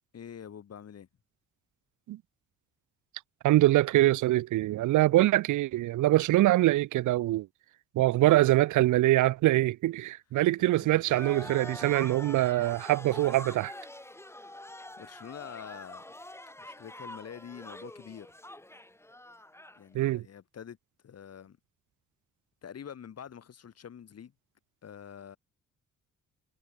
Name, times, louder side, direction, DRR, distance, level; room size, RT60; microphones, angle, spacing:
voice 1, 0.1-1.1 10.6-10.9 15.0-16.0 16.6-18.3 19.8-20.8 21.0-21.6 22.6-24.3 24.8-25.4, left 8 dB, 55° left, 7.9 m, -46 dB
voice 2, 3.4-7.5 7.9-13.7 19.9-20.2, right 16 dB, 80° right, 0.9 m, -24 dB
sound 1, 11.1-19.8, left 1 dB, 10° left, 4.1 m, -45 dB
cardioid pair, 90°, 30 cm